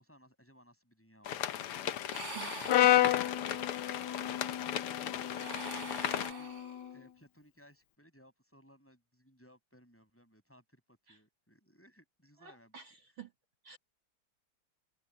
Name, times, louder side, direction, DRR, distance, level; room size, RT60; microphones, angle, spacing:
voice 1, 0.0-2.0 2.7-6.6 6.9-12.7, equal, 5° left, 7.5 m, -62 dB
sound 1, 1.2-6.3, left 10 dB, 85° left, 2.0 m, -37 dB
sound 2, 2.1-3.6 5.2-7.0, right 5 dB, 30° right, 4.5 m, -46 dB
voice 2, 2.3-3.1 11.1-11.2 12.4-13.3 13.6-13.8, right 8 dB, 60° right, 3.9 m, -49 dB
Brass instrument, 2.7-6.9, left 13 dB, 65° left, 1.1 m, -31 dB
open air
omnidirectional pair, 2.4 m